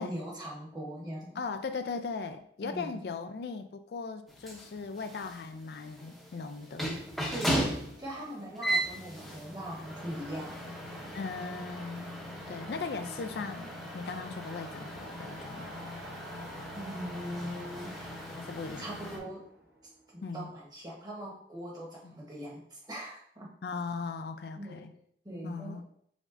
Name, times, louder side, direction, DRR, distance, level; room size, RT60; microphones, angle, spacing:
voice 1, 0.0-1.4 2.6-3.0 7.3-11.1 16.7-18.1 18.8-19.5 20.1-23.5 24.6-24.9 25.2-25.8, equal, 25° right, -4 dB, 1.0 m, -41 dB
voice 2, 1.4-7.0 11.1-12.1 12.5-15.8 18.4-18.9 20.2-20.5 23.6-24.9 25.4-25.8, left 4 dB, 65° left, 9 dB, 0.3 m, -38 dB
sound 1, 4.3-19.2, right 1 dB, ahead, 0.7 m, -38 dB
sound 2, 6.0-20.3, right 1 dB, 60° right, 0.7 m, -50 dB
5.1 x 3.7 x 2.5 m, 0.66 s
head